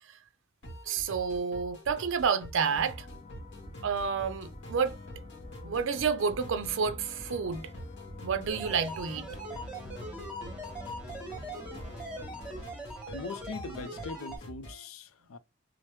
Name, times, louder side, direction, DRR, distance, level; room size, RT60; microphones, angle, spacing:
sound 1, 0.6-14.8, equal, 60° left, 1.0 m, -46 dB
voice 1, 0.9-3.1 3.8-5.0 5.6-7.7 8.2-9.3, right 6 dB, 65° right, 0.5 m, -29 dB
sound 2, 2.7-12.6, left 4 dB, 30° left, 0.5 m, -48 dB
sound 3, 8.5-14.4, right 1 dB, 5° right, 1.1 m, -41 dB
voice 2, 13.1-15.4, left 4 dB, 85° left, 0.4 m, -41 dB
3.0 x 2.0 x 3.2 m
head